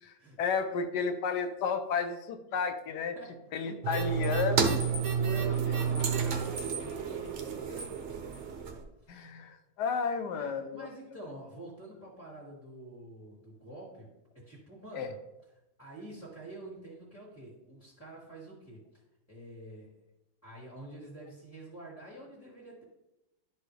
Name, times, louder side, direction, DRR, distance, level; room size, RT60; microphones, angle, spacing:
voice 1, 0.4-3.2 3.5-4.8 6.3-6.4 9.1-10.9 14.9-15.1, left 5 dB, 65° left, 8 dB, 1.2 m, -32 dB
sound 1, 3.8-8.8, right 6 dB, 55° right, 0.8 m, -30 dB
voice 2, 5.2-7.9 9.0-9.2 10.3-15.2 15.8-18.8 19.3-19.9 20.4-22.8, right 1 dB, 10° left, -5 dB, 1.8 m, -47 dB
11.5 x 4.3 x 3.3 m, 0.94 s
omnidirectional pair, 2.2 m